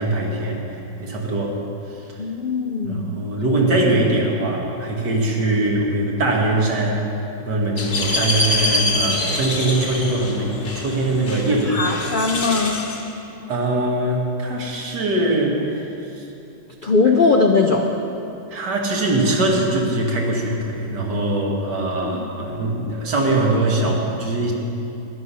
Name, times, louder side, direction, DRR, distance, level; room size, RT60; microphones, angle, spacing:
voice 1, 0.0-1.6 1.9-2.2 2.8-7.0 7.4-11.7 13.5-16.3 18.5-24.5, right 2 dB, 70° right, -1 dB, 2.2 m, -22 dB
voice 2, 2.2-3.1 8.8-9.3 11.5-12.8 16.8-17.9 22.0-22.3, left 4 dB, 75° left, 2 dB, 0.4 m, -20 dB
sound 1, 7.8-13.0, left 2 dB, 35° left, 1.4 m, -25 dB
12.0 x 11.5 x 5.5 m, 2.8 s
omnidirectional pair, 1.9 m